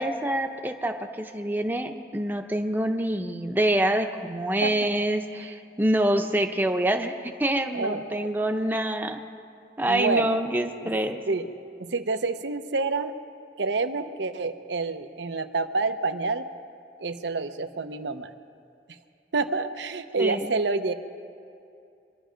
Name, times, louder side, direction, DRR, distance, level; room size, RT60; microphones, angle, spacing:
voice 1, 0.0-9.2 9.8-11.2 20.2-20.5, right 1 dB, 10° right, 5 dB, 0.7 m, -26 dB
voice 2, 7.7-8.3 9.9-10.3 10.8-10.9 11.3-11.5 11.8-13.1 13.6-16.5 17.0-18.3 19.3-20.9, right 3 dB, 85° right, 8 dB, 0.8 m, -28 dB
24.5 x 11.5 x 5.1 m, 2.5 s
head